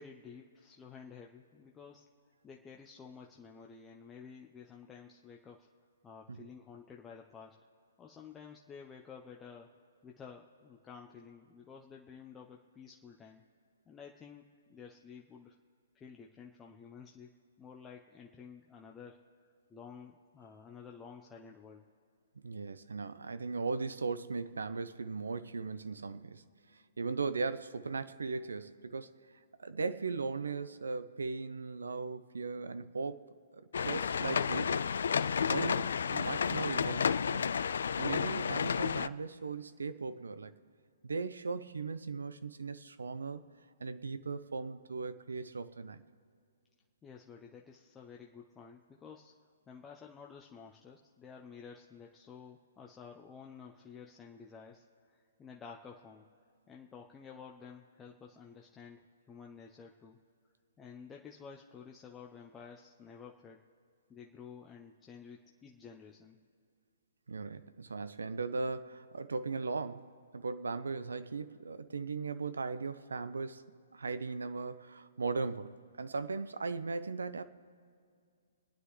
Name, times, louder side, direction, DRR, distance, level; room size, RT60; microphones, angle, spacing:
voice 1, 0.0-2.1 2.4-5.7 6.0-7.6 8.0-9.7 10.0-13.4 13.9-15.6 15.9-17.3 17.6-21.8 47.0-49.3 49.7-56.3 56.7-60.2 60.8-63.6 64.1-66.4, left 6 dB, 15° left, 0 dB, 0.8 m, -52 dB
voice 2, 22.4-26.4 26.7-29.2 29.6-33.3 33.5-34.9 35.5-37.6 38.0-40.5 41.0-43.4 43.8-46.0 67.3-70.1 70.3-77.4, right 4 dB, 80° right, 13 dB, 0.7 m, -38 dB
sound 1, 33.7-39.1, left 6 dB, 70° left, 0.3 m, -31 dB
26.0 x 9.6 x 3.2 m, 2.2 s
figure-of-eight pair, 125°, 0 cm